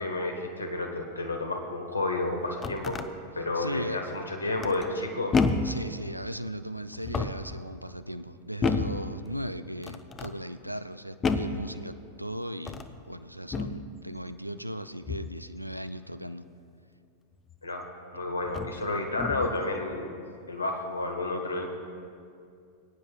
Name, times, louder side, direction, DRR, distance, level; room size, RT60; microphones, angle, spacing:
voice 1, 0.0-2.9 3.3-5.3 17.6-17.9 18.1-21.7, left 2 dB, 80° left, 3 dB, 1.3 m, -31 dB
sound 1, 2.3-3.1 4.6-5.0 5.3-5.8 6.9-7.5 8.6-9.0 9.8-10.3 11.2-11.6 12.6-13.0 13.5-13.8 15.1-15.4 17.5-17.6 18.4-18.8 19.2-19.6, left 4 dB, 20° left, 0.6 m, -30 dB
voice 2, 3.5-4.0 5.6-16.5, equal, 90° right, 11 dB, 0.4 m, -37 dB
22.5 x 9.5 x 2.3 m, 2.4 s
figure-of-eight pair, 90°, 0 cm